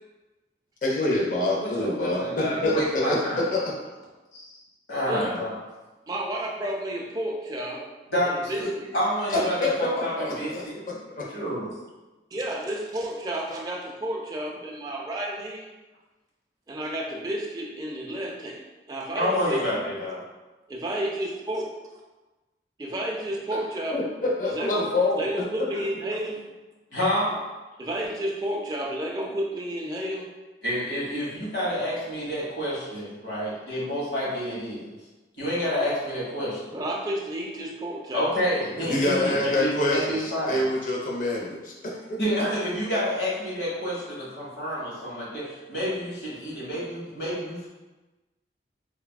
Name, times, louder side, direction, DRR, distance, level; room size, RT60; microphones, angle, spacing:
voice 1, 0.8-3.6 9.3-10.6 11.1-11.3 23.9-25.3 38.8-42.2, left 2 dB, 45° left, -3 dB, 0.5 m, -26 dB
voice 2, 1.6-3.5 4.3-4.5 4.9-5.5 8.1-10.8 11.3-11.7 19.1-20.2 26.9-27.4 30.6-34.9 35.4-36.7 38.1-40.6 42.2-47.7, equal, 80° left, -6 dB, 1.1 m, -28 dB
voice 3, 6.1-7.9 8.2-8.6 12.3-15.8 16.7-19.6 20.7-21.7 22.8-24.0 24.4-24.9 25.2-26.4 27.8-30.3 36.7-38.3, right 1 dB, 20° right, -1 dB, 0.3 m, -31 dB
3.2 x 2.3 x 2.2 m, 1.1 s
head